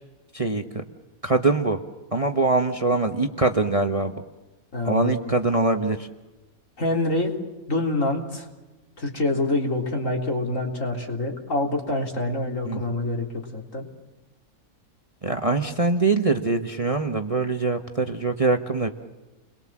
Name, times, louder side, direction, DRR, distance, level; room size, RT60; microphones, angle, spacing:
voice 1, 0.3-0.8 1.2-1.8 2.1-4.1 4.8-6.1 12.7-12.8 15.2-18.9, right 3 dB, 25° right, 5 dB, 1.2 m, -23 dB
voice 2, 4.7-5.1 6.8-7.3 7.7-8.5 9.0-13.3 13.5-13.8, left 2 dB, 60° left, 1 dB, 4.0 m, -26 dB
30.0 x 22.0 x 7.5 m, 1.1 s
omnidirectional pair, 1.5 m